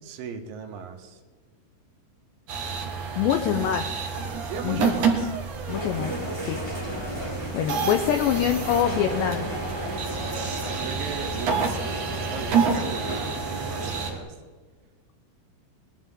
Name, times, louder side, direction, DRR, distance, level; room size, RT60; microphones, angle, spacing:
voice 1, 0.0-1.2 4.5-5.3 10.7-11.8 12.3-14.3, right 6 dB, 85° right, 4 dB, 4.1 m, -36 dB
sound 1, 2.5-14.1, right 5 dB, 55° right, 2.4 m, -29 dB
voice 2, 3.2-3.9 4.6-5.3 5.7-6.2 6.4-6.6 7.5-9.5, left 9 dB, 90° left, 6 dB, 2.5 m, -25 dB
sound 2, 5.7-14.2, equal, 5° left, 3.1 m, -34 dB
21.5 x 12.5 x 3.7 m, 1.5 s
omnidirectional pair, 5.9 m